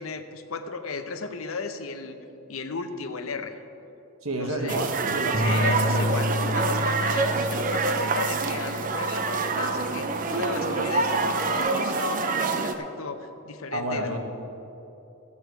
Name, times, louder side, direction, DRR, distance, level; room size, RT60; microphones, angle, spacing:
voice 1, 0.0-2.2 2.5-3.6 4.3-4.8 5.3-14.2, left 4 dB, 80° left, 8 dB, 0.8 m, -34 dB
voice 2, 4.2-5.6 13.7-14.2, right 1 dB, 75° right, 3 dB, 1.3 m, -29 dB
sound 1, 4.7-12.7, right 4 dB, 40° right, 0.6 m, -26 dB
sound 2, 5.3-11.6, left 2 dB, 25° left, 0.7 m, -31 dB
13.5 x 8.6 x 4.6 m, 2.9 s
head